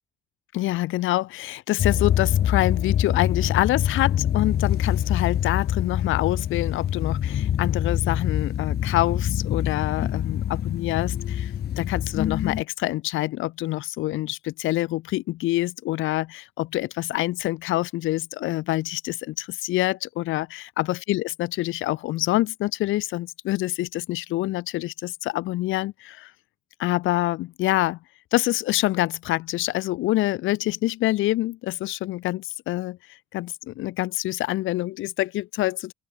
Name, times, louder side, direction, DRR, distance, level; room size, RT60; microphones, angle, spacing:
voice 1, 0.5-20.5 20.8-26.3 26.8-28.0 28.3-35.9, left 17 dB, 90° left, 0.9 m, -26 dB
sound 1, 1.8-12.6, left 10 dB, 55° left, 0.8 m, -25 dB
open air
cardioid pair, 90°, 20 cm